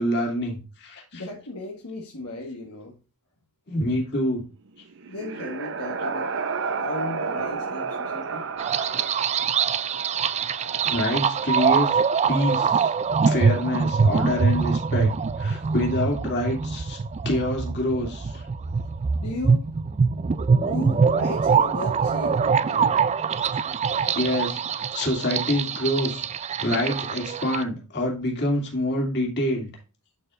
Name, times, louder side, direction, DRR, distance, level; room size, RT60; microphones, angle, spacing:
voice 1, 0.0-1.2 3.7-4.4 10.8-11.9 12.3-12.9 13.2-15.1 15.4-17.0 17.2-18.4 24.1-26.2 26.6-29.7, left 1 dB, 50° left, 2.7 m, -26 dB
voice 2, 1.1-2.9 5.1-6.3 6.8-8.4 8.7-8.8 19.2-19.6 20.5-22.9, left 2 dB, 80° left, 1.5 m, -35 dB
sound 1, 4.7-12.6, right 5 dB, 60° right, 0.7 m, -33 dB
sound 2, 8.6-27.6, right 5 dB, 30° right, 0.3 m, -24 dB
11.0 x 4.5 x 2.5 m
head